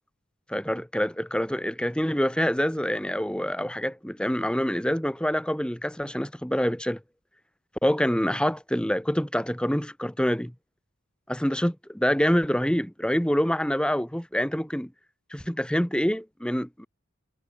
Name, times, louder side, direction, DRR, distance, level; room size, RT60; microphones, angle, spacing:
voice 1, 0.5-7.0 7.8-10.5 11.3-14.9 15.3-16.9, equal, 5° left, 1.6 m, -26 dB
head